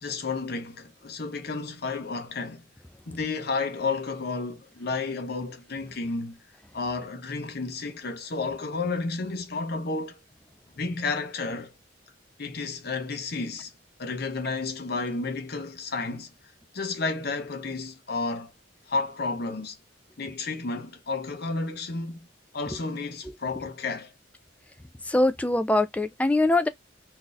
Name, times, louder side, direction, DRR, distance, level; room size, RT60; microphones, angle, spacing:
voice 1, 0.0-2.6 3.1-6.4 6.7-10.2 10.8-11.7 12.4-13.7 14.0-16.3 16.7-18.5 18.9-19.8 20.2-22.3 22.5-24.1, left 3 dB, 55° left, 0.8 m, -31 dB
voice 2, 25.1-26.7, left 2 dB, 5° left, 0.3 m, -22 dB
2.7 x 2.3 x 3.8 m
head